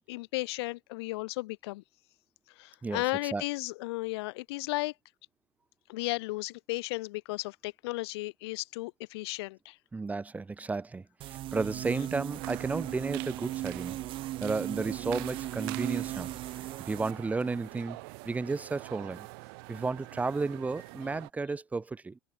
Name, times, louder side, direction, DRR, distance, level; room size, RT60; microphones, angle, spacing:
voice 1, 0.1-1.8 2.6-4.9 5.9-9.8, left 21 dB, 70° left, 2.1 m, -34 dB
voice 2, 2.8-3.4 9.9-14.1 14.4-16.3 16.8-18.0 18.2-19.3 19.7-22.2, right 3 dB, 10° right, 1.8 m, -33 dB
sound 1, 11.2-17.1, right 15 dB, 40° right, 1.9 m, -37 dB
sound 2, 12.3-21.3, right 31 dB, 65° right, 4.7 m, -46 dB
supercardioid pair, 145°, 14 cm